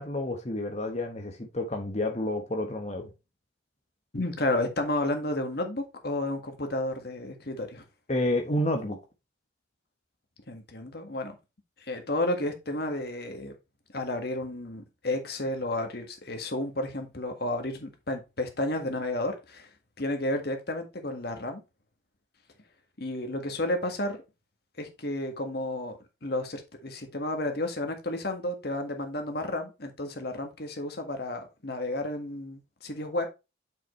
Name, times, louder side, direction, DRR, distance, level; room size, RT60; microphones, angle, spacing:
voice 1, 0.0-3.1 8.1-9.0, left 1 dB, 35° left, 1.2 m, -29 dB
voice 2, 4.1-7.8 10.5-11.4 11.8-13.5 13.9-19.7 20.0-21.6 23.0-24.2 24.8-33.3, left 1 dB, 55° left, 1.7 m, -32 dB
7.2 x 5.8 x 3.2 m
head